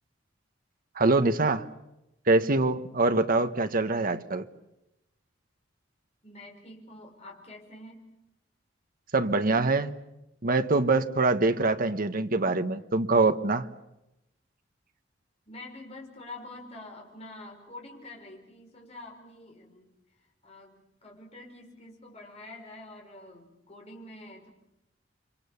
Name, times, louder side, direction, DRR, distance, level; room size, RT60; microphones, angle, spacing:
voice 1, 1.0-1.7 2.3-4.5 9.1-9.9 10.4-13.7, right 3 dB, 50° right, 9 dB, 1.2 m, -24 dB
voice 2, 6.2-8.0 15.5-19.9 20.4-24.5, left 2 dB, 35° left, 0 dB, 5.2 m, -46 dB
29.5 x 25.0 x 7.1 m, 0.90 s
head